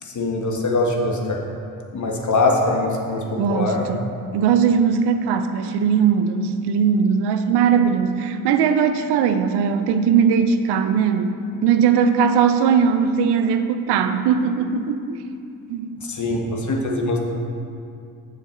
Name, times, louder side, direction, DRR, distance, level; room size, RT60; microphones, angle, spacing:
voice 1, 0.0-1.4 1.9-3.2 3.5-3.9 16.0-17.2, left 2 dB, 45° left, 0 dB, 1.6 m, -22 dB
voice 2, 3.4-4.0 4.3-15.2 15.7-15.9, right 6 dB, 80° right, 9 dB, 0.7 m, -19 dB
7.2 x 6.8 x 5.2 m, 2.4 s
supercardioid pair, 50°, 40 cm